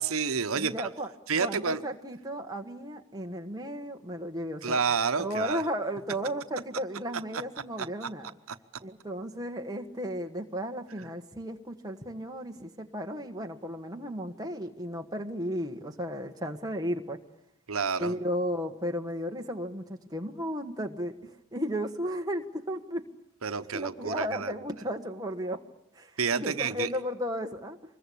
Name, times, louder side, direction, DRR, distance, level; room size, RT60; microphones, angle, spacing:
voice 1, 0.0-0.9 1.3-1.8 4.6-5.6 7.8-8.1 8.5-8.6 17.7-18.2 23.4-24.5 26.2-26.9, right 5 dB, 85° right, 10 dB, 1.1 m, -29 dB
voice 2, 0.6-1.1 1.4-4.8 5.2-8.3 8.8-17.2 18.0-23.0 23.4-25.6 25.9-27.8, equal, 20° right, 3 dB, 1.5 m, -34 dB
25.5 x 22.0 x 8.6 m, 0.79 s
head